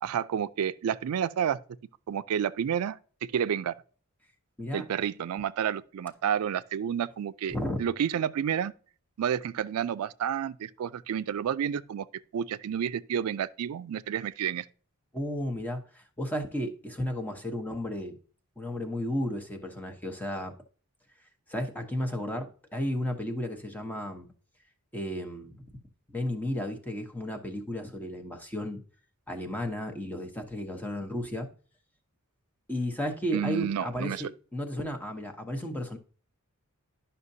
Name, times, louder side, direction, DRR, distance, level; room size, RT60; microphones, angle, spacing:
voice 1, 0.0-1.6 2.1-3.8 4.7-8.7 9.2-12.1 12.3-14.7 33.3-34.2, right 8 dB, 75° right, 0.4 m, -30 dB
voice 2, 4.6-4.9 7.5-7.8 15.1-18.2 18.6-20.5 21.5-24.3 24.9-25.6 26.1-28.8 29.3-31.5 32.7-36.0, equal, 10° left, 0.9 m, -33 dB
11.0 x 5.6 x 2.7 m
head